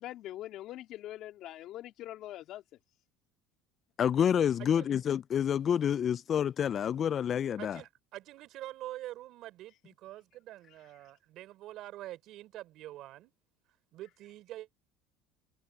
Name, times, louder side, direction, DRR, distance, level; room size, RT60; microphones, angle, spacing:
voice 1, 0.0-2.6, left 14 dB, 60° left, 3.0 m, -43 dB
voice 2, 4.0-7.8, left 8 dB, 40° left, 0.3 m, -28 dB
voice 3, 7.6-13.3 13.9-14.7, right 15 dB, 60° right, 3.6 m, -45 dB
open air
supercardioid pair, 100°, 0 cm